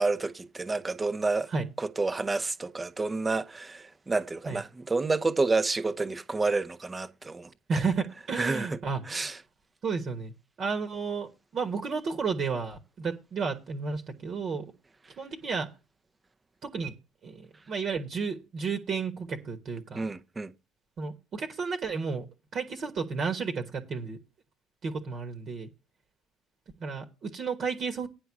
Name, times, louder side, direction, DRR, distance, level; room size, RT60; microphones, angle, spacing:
voice 1, 0.0-1.5 1.8-7.5 8.4-8.7 9.1-9.4 20.0-20.5, right 3 dB, 20° right, 0.9 m, -29 dB
voice 2, 7.7-9.0 9.8-10.3 10.6-14.6 15.2-15.7 16.6-16.9 17.2-20.1 21.0-22.2 22.5-24.2 24.8-25.7 26.8-28.1, right 5 dB, 45° right, 1.4 m, -32 dB
9.9 x 4.8 x 7.2 m
figure-of-eight pair, 55°, 0 cm